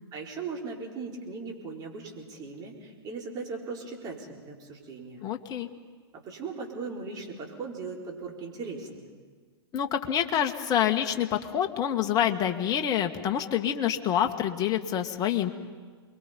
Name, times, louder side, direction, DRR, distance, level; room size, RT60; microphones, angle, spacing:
voice 1, 0.1-5.2 6.1-9.1, right 4 dB, 30° right, -1 dB, 5.0 m, -38 dB
voice 2, 5.2-5.7 9.7-15.5, left 9 dB, 25° left, 5 dB, 1.7 m, -27 dB
28.5 x 22.5 x 5.4 m, 1.5 s
figure-of-eight pair, 110°, 14 cm